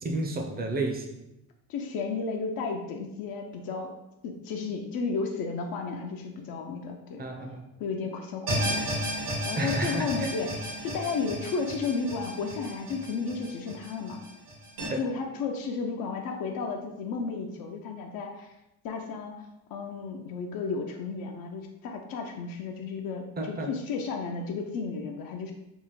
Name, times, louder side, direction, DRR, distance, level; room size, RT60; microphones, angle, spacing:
voice 1, 0.0-1.2 7.2-7.6 9.6-10.3 14.9-15.0 23.4-23.7, right 2 dB, 25° right, 3 dB, 0.5 m, -31 dB
voice 2, 1.7-3.9 4.2-7.2 7.8-8.8 9.4-14.2 14.9-18.5 18.8-19.4 19.7-25.5, left 4 dB, 70° left, 3 dB, 0.5 m, -33 dB
sound 1, 8.5-14.9, right 1 dB, 80° right, 1.4 m, -33 dB
3.6 x 2.0 x 3.0 m, 0.90 s
supercardioid pair, 80°, 37 cm